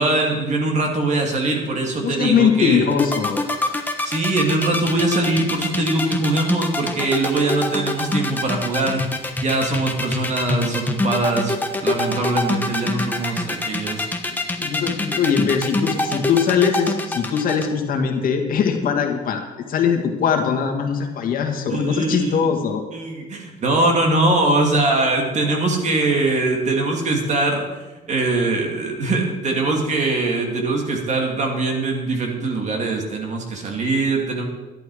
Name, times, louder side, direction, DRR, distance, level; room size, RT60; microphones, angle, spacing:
voice 1, 0.0-2.8 4.0-9.0 9.4-14.1 21.7-22.4 22.9-27.8 28.1-34.4, right 2 dB, 45° right, 2 dB, 2.5 m, -22 dB
voice 2, 2.0-3.4 14.6-22.8, left 7 dB, 55° left, 3 dB, 2.0 m, -21 dB
sound 1, 2.9-17.7, left 2 dB, 10° left, 1.3 m, -24 dB
11.5 x 11.0 x 4.9 m, 1.2 s
cardioid pair, 110°, 17 cm